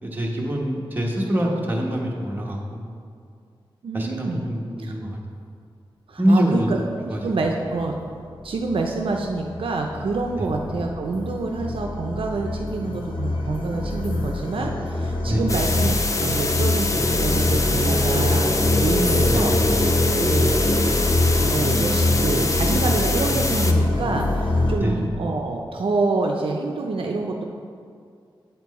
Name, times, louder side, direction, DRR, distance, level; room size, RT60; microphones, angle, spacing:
voice 1, 0.0-2.8 3.9-5.2 6.2-6.7 7.1-7.2 10.4-10.5 15.2-15.5 19.3-19.6 24.8-25.0, equal, 20° right, -2 dB, 1.1 m, -24 dB
voice 2, 3.8-4.5 4.8-4.9 6.1-8.0 8.4-19.5 20.2-20.6 21.4-27.4, right 3 dB, 70° right, 2 dB, 0.5 m, -27 dB
sound 1, 7.8-7.9 8.4-24.8, left 2 dB, 65° left, 0.8 m, -23 dB
sound 2, 15.5-23.7, left 3 dB, 35° left, 0.5 m, -26 dB
8.2 x 4.4 x 4.1 m, 2.3 s
wide cardioid pair, 95°, 9 cm